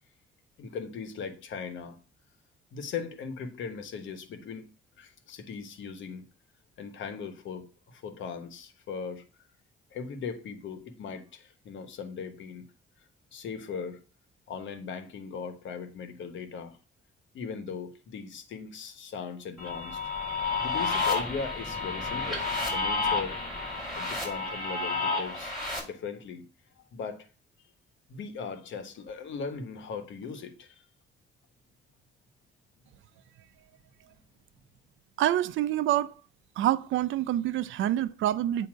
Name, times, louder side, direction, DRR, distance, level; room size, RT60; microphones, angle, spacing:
voice 1, 0.6-2.0 2.7-4.7 5.0-6.3 6.8-9.2 9.9-12.6 13.3-14.0 14.5-16.8 17.3-20.0 20.6-23.4 23.9-25.6 25.8-26.4 26.8-27.3 28.1-30.8, left 5 dB, 75° left, 1.2 m, -39 dB
sound 1, 19.6-25.8, left 4 dB, ahead, 4.2 m, -30 dB
voice 2, 35.2-36.1 36.6-38.7, right 12 dB, 80° right, 0.5 m, -26 dB
8.5 x 2.9 x 6.1 m
cardioid pair, 90°, 20 cm